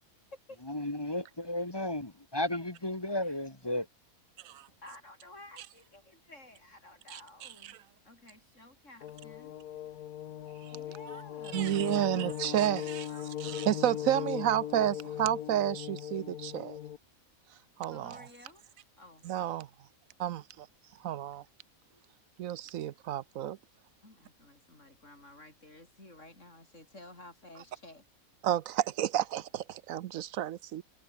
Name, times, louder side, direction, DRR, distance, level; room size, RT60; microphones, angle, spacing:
voice 1, 0.6-3.9 10.7-10.8, left 1 dB, 15° left, 1.7 m, -34 dB
voice 2, 4.8-7.8 8.1-9.6 10.7-13.3 17.9-18.6 19.0-19.3 24.0-28.0, left 2 dB, 55° left, 7.0 m, -53 dB
voice 3, 7.1-7.7 11.5-13.0 13.4-16.8 17.8-18.3 19.2-19.7 20.2-20.7 21.0-21.4 22.4-23.6 28.4-30.8, right 12 dB, 70° right, 1.0 m, -31 dB
sound 1, 9.0-17.0, left 11 dB, 85° left, 1.4 m, -39 dB
omnidirectional pair, 1.5 m